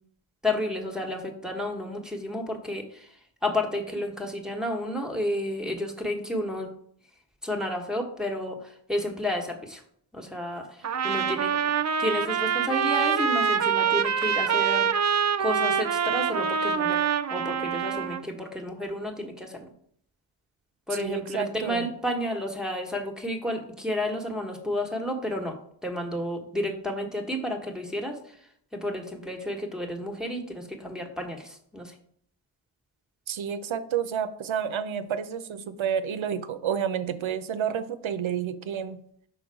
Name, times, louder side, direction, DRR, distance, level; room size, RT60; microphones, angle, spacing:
voice 1, 0.4-6.7 7.4-9.8 10.1-11.6 12.0-15.1 15.4-17.0 17.3-19.7 20.9-31.9, left 1 dB, ahead, 2 dB, 1.1 m, -31 dB
Trumpet, 10.8-18.2, right 7 dB, 35° right, 0.4 m, -25 dB
voice 2, 21.0-21.9 33.3-39.0, right 8 dB, 70° right, 11 dB, 0.7 m, -30 dB
6.1 x 3.9 x 4.7 m, 0.65 s
cardioid pair, 50°, 48 cm